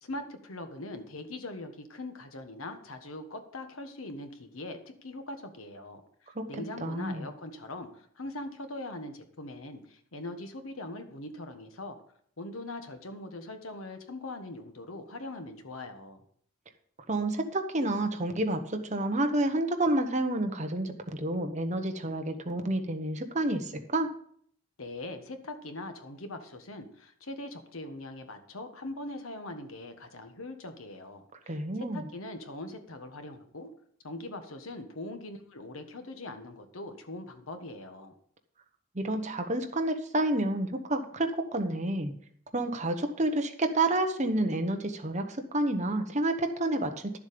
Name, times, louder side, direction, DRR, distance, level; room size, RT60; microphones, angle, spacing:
voice 1, 0.0-12.0 12.4-16.2 24.8-31.6 31.9-33.7 34.0-38.1, left 2 dB, 90° left, 7 dB, 1.4 m, -41 dB
voice 2, 6.8-7.3 17.1-24.1 31.5-32.0 38.9-42.1 42.5-47.2, right 1 dB, 35° right, 6 dB, 1.1 m, -29 dB
11.5 x 7.3 x 5.2 m, 0.62 s
head